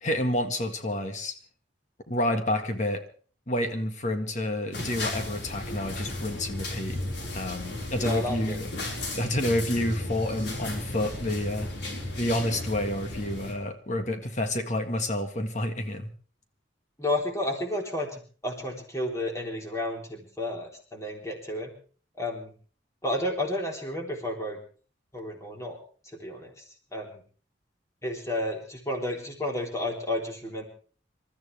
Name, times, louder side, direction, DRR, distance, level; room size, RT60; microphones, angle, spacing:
voice 1, 0.0-1.4 2.1-3.0 3.5-7.0 7.3-8.7 9.1-11.7 12.2-16.1, left 1 dB, 40° left, 6 dB, 1.7 m, -29 dB
sound 1, 4.7-13.5, left 1 dB, 65° left, 4.6 m, -35 dB
voice 2, 8.0-8.6 17.0-21.7 22.2-22.5 23.0-24.6 25.1-25.8 26.2-26.6 26.9-27.2 28.0-30.7, left 1 dB, 15° left, 1 dB, 3.7 m, -31 dB
27.5 x 13.5 x 3.4 m, 0.41 s
head